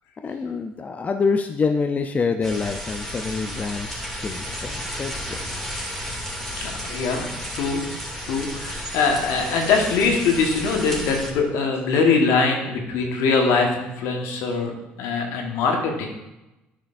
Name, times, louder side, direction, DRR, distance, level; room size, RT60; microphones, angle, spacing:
voice 1, 0.2-5.4, left 4 dB, 30° left, 6 dB, 0.5 m, -26 dB
sound 1, 2.4-11.3, equal, 5° left, 2.4 m, -33 dB
voice 2, 6.6-7.8 8.3-16.1, left 4 dB, 75° left, 2 dB, 1.4 m, -22 dB
10.0 x 5.1 x 2.6 m, 0.96 s
hypercardioid pair, 65°, 5 cm